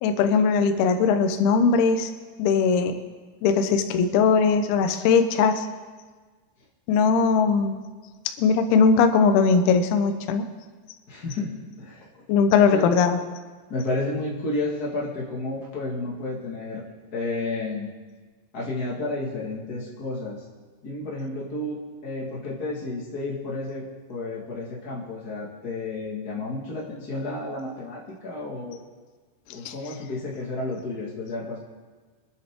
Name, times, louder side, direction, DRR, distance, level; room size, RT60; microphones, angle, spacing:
voice 1, 0.0-2.1 2.4-3.0 3.4-5.7 6.9-7.8 8.4-10.4 12.3-13.2 29.7-29.8, left 5 dB, 75° left, 7 dB, 2.6 m, -20 dB
voice 2, 11.1-12.2 12.7-12.9 13.7-16.8 17.1-17.9 18.5-20.4 20.8-28.8 29.5-31.6, left 2 dB, 60° left, -4 dB, 1.0 m, -31 dB
24.5 x 10.0 x 3.7 m, 1.4 s
omnidirectional pair, 5.2 m